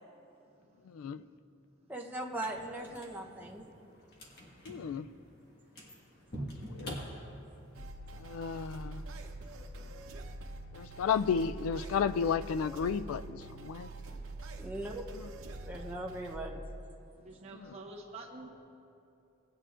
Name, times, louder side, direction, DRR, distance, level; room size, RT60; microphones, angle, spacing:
voice 1, 1.9-3.6 14.6-14.9 15.6-16.6, right 1 dB, 10° right, -2 dB, 0.7 m, -39 dB
sound 1, 2.3-7.8, equal, 50° left, 1.6 m, -46 dB
voice 2, 4.7-5.0 6.7-7.0 8.2-9.0 10.7-13.9, left 6 dB, 85° left, 14 dB, 0.3 m, -32 dB
sound 2, 7.7-16.4, right 2 dB, 80° right, 0.8 m, -45 dB
voice 3, 17.2-18.5, right 2 dB, 30° right, -3 dB, 1.0 m, -47 dB
18.0 x 8.9 x 2.5 m, 2.7 s
head